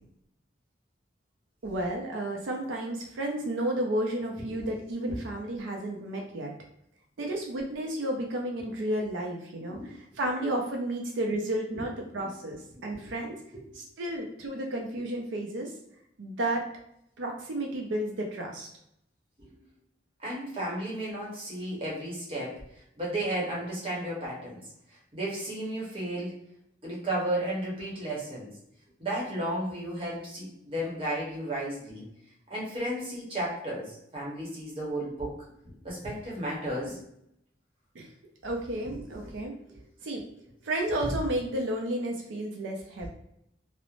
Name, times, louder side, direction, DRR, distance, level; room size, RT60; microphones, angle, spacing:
voice 1, 1.6-6.5 7.2-9.8 10.2-13.4 13.7-15.7 16.2-16.6 17.2-18.7 37.9-38.1 38.4-39.6 40.0-40.2 40.6-43.1, right 1 dB, 85° right, 0 dB, 0.4 m, -32 dB
voice 2, 20.2-22.6 23.0-24.6 25.1-26.4 26.8-28.5 29.0-32.0 32.5-35.3 35.8-37.0 38.9-39.3, right 1 dB, 30° right, -5 dB, 0.9 m, -33 dB
3.0 x 2.0 x 2.4 m, 0.76 s
head